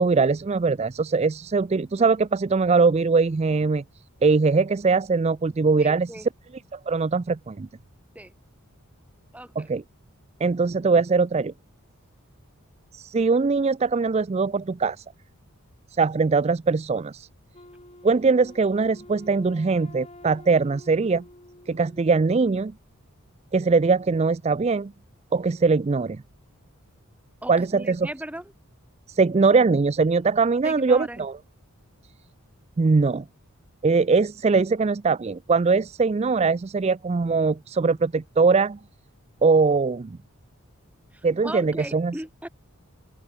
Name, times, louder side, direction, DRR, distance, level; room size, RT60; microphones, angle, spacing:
voice 1, 0.0-3.8 4.2-6.3 6.7-7.7 9.6-9.8 10.4-11.5 12.9-15.0 16.0-17.3 18.0-21.2 21.7-22.7 23.5-24.9 25.3-26.2 27.5-28.1 29.1-31.3 32.8-33.2 33.8-38.8 39.4-40.2 41.2-42.1, right 4 dB, 30° right, 0.4 m, -21 dB
voice 2, 5.8-6.3 8.1-8.3 9.3-9.7 27.4-28.5 30.6-31.2 41.1-42.5, right 1 dB, 5° right, 2.4 m, -37 dB
Wind instrument woodwind instrument, 17.5-22.5, left 1 dB, 30° left, 7.6 m, -48 dB
open air
head